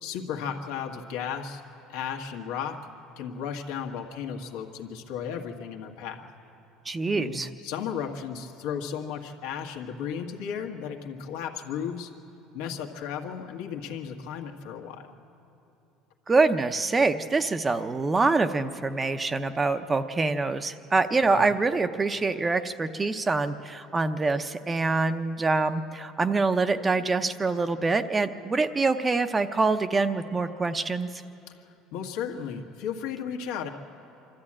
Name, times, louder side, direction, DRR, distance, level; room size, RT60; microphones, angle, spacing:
voice 1, 0.0-1.6 1.9-2.9 3.2-6.3 7.1-12.1 12.5-15.1 21.3-21.5 31.5-31.6 31.9-33.7, left 7 dB, 85° left, 2 dB, 1.7 m, -34 dB
voice 2, 6.9-7.5 16.3-31.1, right 3 dB, 20° right, 10 dB, 0.6 m, -25 dB
25.0 x 13.0 x 8.7 m, 2.9 s
cardioid pair, 130°, 0 cm